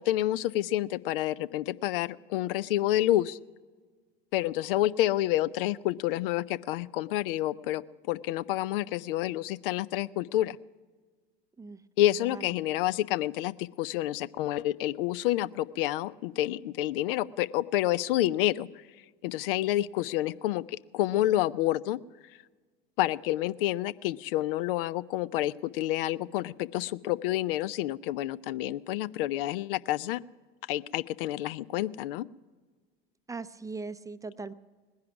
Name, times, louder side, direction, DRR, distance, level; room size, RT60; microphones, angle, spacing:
voice 1, 0.0-3.4 4.3-7.8 8.1-10.6 12.0-18.7 19.2-22.0 23.0-30.2 30.7-32.2, left 14 dB, 65° left, 19 dB, 0.5 m, -29 dB
voice 2, 33.3-34.5, right 4 dB, 10° right, 13 dB, 0.5 m, -39 dB
19.0 x 10.5 x 5.9 m, 1.4 s
hypercardioid pair, 75°, 30 cm